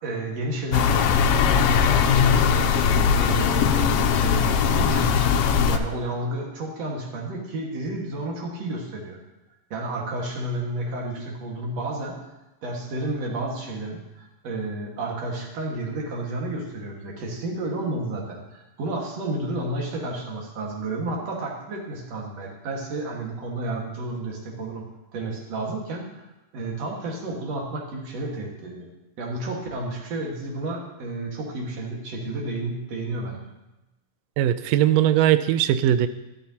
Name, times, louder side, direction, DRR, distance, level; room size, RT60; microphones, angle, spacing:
voice 1, 0.0-9.2 9.7-12.2 12.6-24.8 25.1-26.3 26.5-28.9 29.2-33.4, right 2 dB, 60° right, 0 dB, 2.8 m, -31 dB
sound 1, 0.7-5.8, left 7 dB, 90° left, 1.3 m, -20 dB
voice 2, 34.4-36.1, right 11 dB, 90° right, 12 dB, 1.4 m, -19 dB
13.0 x 12.0 x 2.9 m, 1.0 s
omnidirectional pair, 3.5 m